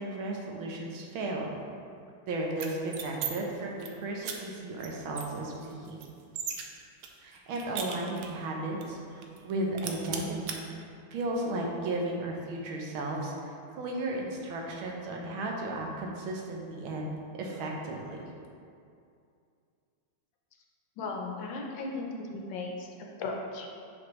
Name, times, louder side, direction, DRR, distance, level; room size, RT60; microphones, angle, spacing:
voice 1, 0.0-1.5 2.3-6.0 7.2-10.7 11.1-18.2, right 2 dB, 90° right, -1 dB, 1.6 m, -34 dB
sound 1, 2.5-3.3 3.6-3.9 4.2-4.4 4.8-4.9 5.2-6.6 7.0-8.4 8.8-8.9 9.2-9.5 9.8-10.6, right 7 dB, 75° right, 1.0 m, -37 dB
voice 2, 21.0-22.9 23.2-23.8, left 3 dB, 75° left, 1 dB, 1.3 m, -36 dB
6.0 x 5.2 x 3.1 m, 2.4 s
omnidirectional pair, 2.2 m